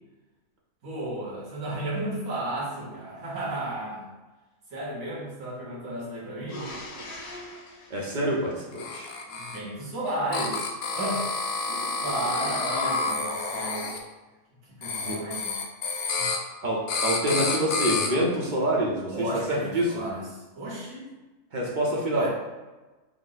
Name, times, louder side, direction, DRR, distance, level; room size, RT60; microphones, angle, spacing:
voice 1, 0.8-4.1 4.7-6.7 9.2-11.3 12.0-13.9 14.7-15.6 16.1-16.4 19.1-21.1 22.1-22.3, right 1 dB, 85° right, -7 dB, 1.7 m, -33 dB
sound 1, 6.5-9.2 11.6-13.0, equal, 65° left, 1.2 m, -43 dB
voice 2, 7.9-9.1 15.0-15.2 16.6-20.0 21.5-22.3, right 1 dB, 45° right, -3 dB, 0.7 m, -26 dB
sound 2, 8.7-9.6 10.3-14.0 14.8-16.4 16.9-18.1, left 4 dB, 85° left, 1.1 m, -29 dB
4.9 x 2.0 x 3.9 m, 1.2 s
omnidirectional pair, 1.5 m